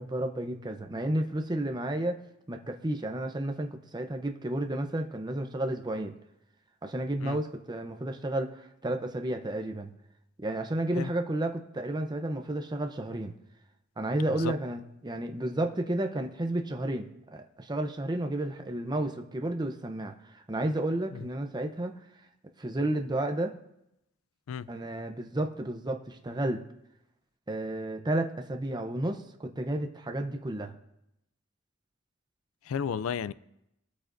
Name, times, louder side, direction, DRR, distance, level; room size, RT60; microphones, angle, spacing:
voice 1, 0.0-2.2 2.5-6.1 6.8-9.9 10.4-13.3 14.0-22.0 22.6-23.5 24.7-26.6 27.5-30.7, right 1 dB, 20° right, 0.7 m, -32 dB
voice 2, 32.7-33.3, left 7 dB, 85° left, 0.4 m, -32 dB
20.5 x 8.5 x 2.6 m
head